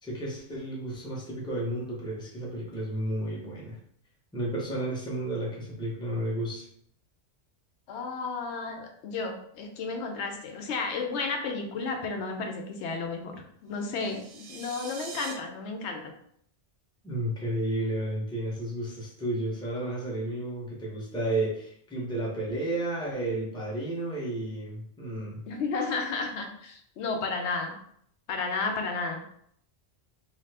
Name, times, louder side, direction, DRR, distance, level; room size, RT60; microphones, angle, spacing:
voice 1, 0.0-3.8 4.3-6.7 17.0-25.4, right 1 dB, 5° left, -5 dB, 0.6 m, -32 dB
voice 2, 7.9-13.3 13.6-16.1 25.5-27.7 28.3-29.2, left 4 dB, 85° left, 3 dB, 0.9 m, -32 dB
sound 1, 13.7-15.3, right 4 dB, 90° right, 0.9 m, -43 dB
2.7 x 2.3 x 3.2 m, 0.66 s
omnidirectional pair, 1.1 m